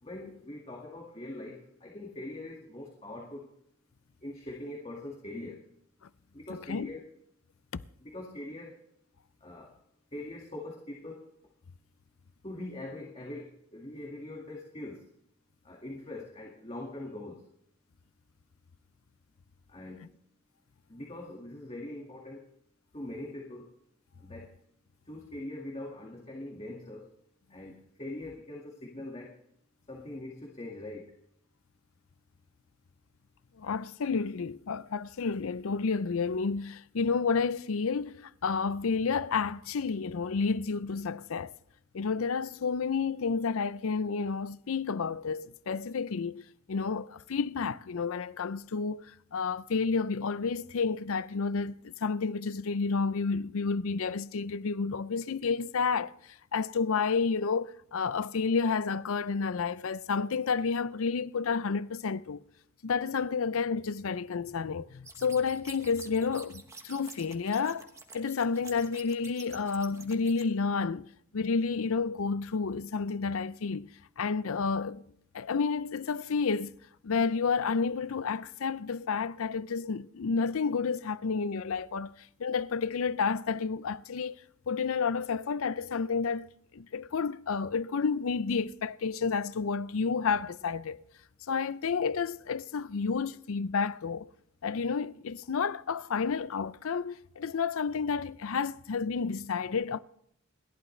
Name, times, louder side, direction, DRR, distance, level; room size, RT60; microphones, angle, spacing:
voice 1, 0.0-3.5 4.2-5.6 6.3-7.0 8.0-8.8 9.4-9.7 10.1-11.2 12.4-15.1 15.6-17.5 19.7-20.1 20.9-22.5 22.9-23.7 24.2-24.5 25.1-27.1 27.5-29.4 29.9-31.1, left 1 dB, 25° left, 1.9 m, -42 dB
voice 2, 6.5-6.9 7.7-7.8 33.6-41.5 41.9-46.4 46.7-56.1 56.5-62.4 62.8-67.9 68.1-71.1 71.3-73.9 74.2-75.0 75.3-76.8 77.0-82.1 82.4-84.4 84.7-86.5 86.7-91.0 91.5-94.3 94.6-100.0, left 5 dB, 70° left, 0.5 m, -30 dB
sound 1, 65.0-70.4, right 3 dB, 15° right, 1.2 m, -49 dB
29.0 x 11.5 x 3.3 m
head